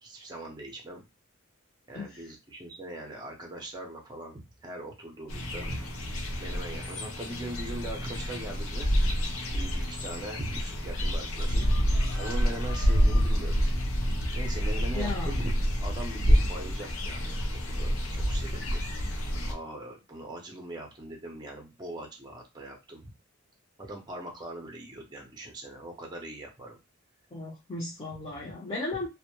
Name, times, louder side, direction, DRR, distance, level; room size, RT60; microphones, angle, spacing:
voice 1, 0.0-1.0 1.9-5.8 6.4-8.9 9.5-11.6 12.1-13.5 14.3-15.5 15.8-18.8 19.5-23.1 23.8-26.8, right 1 dB, 20° right, 0 dB, 0.6 m, -41 dB
sound 1, 5.3-19.5, equal, 70° left, 0.5 m, -28 dB
voice 2, 14.9-15.3 18.5-18.7 27.3-29.1, left 2 dB, 25° left, -6 dB, 0.6 m, -36 dB
2.1 x 2.0 x 2.9 m, 0.25 s
head